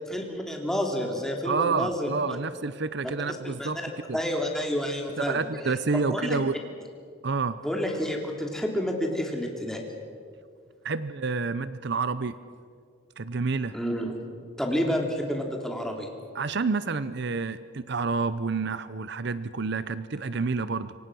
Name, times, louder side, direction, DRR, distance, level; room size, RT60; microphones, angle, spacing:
voice 1, 0.1-2.4 3.0-3.7 4.1-6.4 7.6-9.8 13.7-14.3 14.6-16.1, equal, ahead, 1 dB, 3.0 m, -30 dB
voice 2, 1.4-3.8 4.1-4.2 5.2-6.6 7.2-7.6 10.8-12.4 13.2-13.8 16.3-20.9, right 4 dB, 55° right, 14 dB, 0.6 m, -29 dB
27.0 x 24.0 x 6.2 m, 2.2 s
head